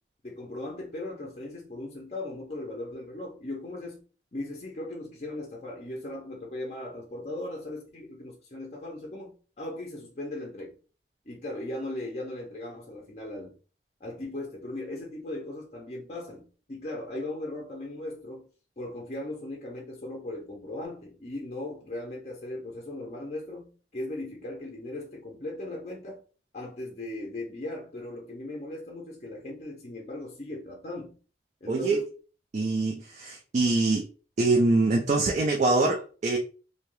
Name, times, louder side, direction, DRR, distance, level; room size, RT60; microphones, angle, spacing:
voice 1, 0.2-4.0 4.3-10.8 11.3-13.5 14.0-18.5 18.8-26.2 26.5-31.1 31.6-32.1, left 1 dB, 35° left, 0.5 m, -38 dB
voice 2, 31.7-32.0 32.5-34.1 34.4-36.4, right 2 dB, 40° right, 0.3 m, -24 dB
2.7 x 2.2 x 3.0 m
head